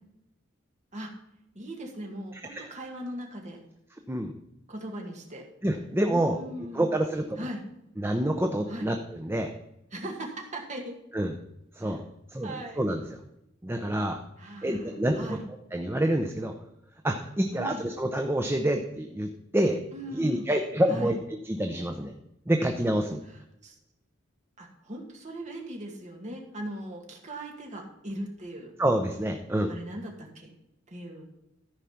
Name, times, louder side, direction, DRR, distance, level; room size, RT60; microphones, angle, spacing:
voice 1, 1.5-3.6 4.7-5.5 6.1-6.9 7.4-7.6 8.7-8.9 9.9-10.9 11.8-12.0 12.4-12.8 14.4-15.4 17.5-17.8 19.9-20.5 20.9-21.1 23.6-23.8 24.6-28.8 29.7-30.5 30.9-31.3, right 1 dB, 35° right, 1 dB, 2.0 m, -39 dB
voice 2, 5.6-6.4 6.7-7.4 8.0-9.5 11.1-11.3 11.8-12.0 12.3-13.2 13.6-14.2 14.6-15.4 15.7-16.5 17.0-19.8 20.1-21.2 21.5-22.1 22.5-23.2 28.8-29.7, right 1 dB, 10° right, 5 dB, 0.6 m, -27 dB
13.5 x 4.9 x 5.8 m, 0.86 s
head